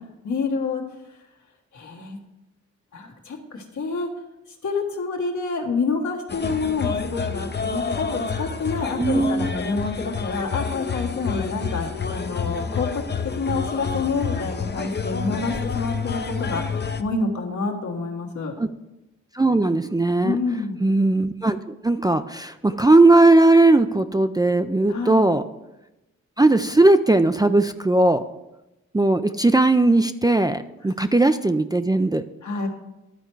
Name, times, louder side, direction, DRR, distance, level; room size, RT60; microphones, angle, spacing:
voice 1, 0.2-0.8 1.7-2.2 2.9-4.1 4.6-13.0 13.3-18.5 20.2-20.8 24.9-25.3 32.4-32.7, left 3 dB, 70° left, 0 dB, 1.5 m, -28 dB
sound 1, 6.3-17.0, left 6 dB, 35° left, 0.6 m, -29 dB
voice 2, 9.0-9.5 18.6-18.7 19.3-20.4 20.8-25.4 26.4-28.2 28.9-32.2, right 2 dB, 15° right, 8 dB, 0.4 m, -18 dB
11.5 x 4.4 x 4.7 m, 0.95 s
cardioid pair, 55°, 30 cm